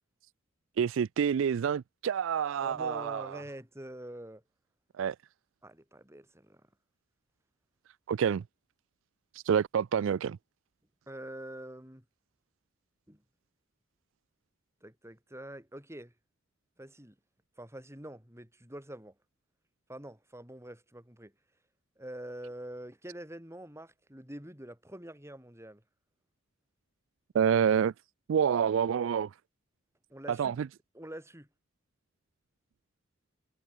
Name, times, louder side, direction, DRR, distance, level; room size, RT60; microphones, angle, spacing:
voice 1, 0.8-3.4 5.0-5.1 8.1-8.4 9.5-10.4 27.3-27.9 28.3-29.3 30.3-30.7, right 7 dB, 70° right, 0.3 m, -27 dB
voice 2, 2.6-4.4 5.6-6.6 11.1-12.0 13.1-13.2 14.8-16.1 16.8-17.2 17.6-19.1 19.9-21.3 22.0-25.8 30.1-30.6 30.9-31.5, right 1 dB, 15° right, 7.9 m, -45 dB
head